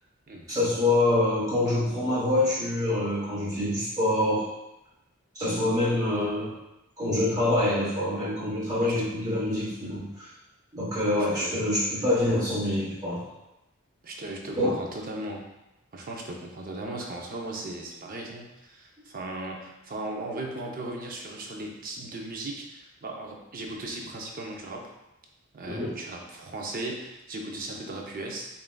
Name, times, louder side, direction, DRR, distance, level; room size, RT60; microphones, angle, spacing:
voice 1, 0.5-4.5 5.3-6.5 7.0-10.3 10.7-13.2 14.6-14.7 25.7-25.9, left 1 dB, 15° right, -9 dB, 0.9 m, -26 dB
voice 2, 11.2-11.6 14.0-15.4 15.9-24.9 25.5-28.5, right 2 dB, 40° right, 0 dB, 0.6 m, -37 dB
6.6 x 2.5 x 2.3 m, 0.95 s
head